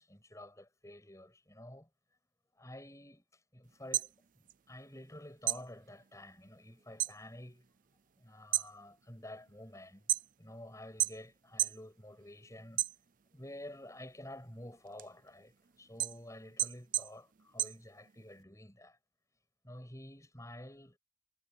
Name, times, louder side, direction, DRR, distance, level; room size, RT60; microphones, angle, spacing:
voice 1, 0.0-1.9 2.6-4.1 4.7-7.7 8.2-10.1 10.4-12.8 13.3-19.0 19.6-21.0, left 1 dB, 15° left, 8.0 m, -50 dB
sound 1, 3.7-5.1 5.4-7.2 7.6-8.0 8.4-10.6 11.0-11.9 12.2-13.4 13.9-18.4, right 13 dB, 45° right, 0.5 m, -35 dB
head